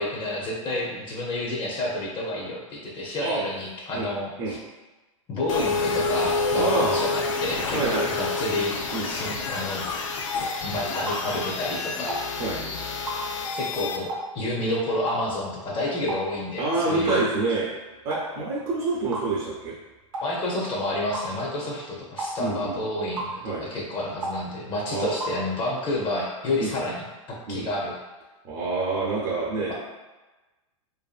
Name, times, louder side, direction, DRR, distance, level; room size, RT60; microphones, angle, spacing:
voice 1, 0.0-4.6 5.3-8.8 9.0-9.8 10.6-12.2 13.5-17.2 20.2-28.0 29.7-29.8, left 1 dB, 30° left, -3 dB, 0.6 m, -30 dB
sound 1, 5.5-14.0, left 4 dB, 75° left, 0.5 m, -28 dB
voice 2, 6.5-7.0 7.7-8.1 8.4-8.5 8.9-9.1 12.4-12.6 16.6-17.7 18.0-19.8 22.4-22.8 23.4-23.6 24.9-25.1 26.6-26.7 27.5-27.7 28.4-29.7, right 3 dB, 40° right, -5 dB, 0.6 m, -27 dB
sound 2, 11.1-11.2 12.1-12.3 13.1-13.2 14.1-14.3 15.1-15.3 16.1-16.3 17.1-17.2 18.1-18.3 19.1-19.3 20.1-20.3 21.1-21.3 22.2-22.4 23.2-23.4 24.2-24.4 25.2-25.4, right 1 dB, 85° right, 0.7 m, -32 dB
2.6 x 2.5 x 2.4 m, 1.1 s
hypercardioid pair, 115°, 17 cm